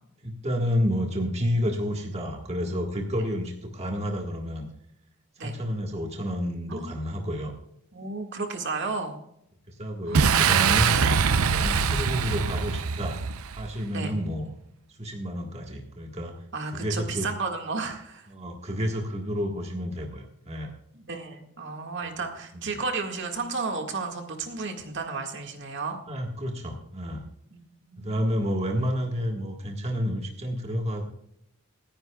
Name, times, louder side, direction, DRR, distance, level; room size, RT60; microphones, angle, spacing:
voice 1, 0.2-4.7 5.4-7.5 9.7-11.0 11.5-14.5 14.9-17.3 18.3-20.7 22.5-22.7 26.1-27.3 28.0-31.0, equal, 30° right, 1 dB, 1.6 m, -30 dB
voice 2, 7.9-9.2 10.1-10.2 10.9-11.1 13.9-14.1 16.5-18.3 21.0-26.0 27.5-27.6 27.9-28.1, right 4 dB, 55° right, 3 dB, 1.9 m, -33 dB
Boom, 10.1-13.8, right 6 dB, 75° right, 0.6 m, -23 dB
27.0 x 10.0 x 2.3 m, 0.75 s
head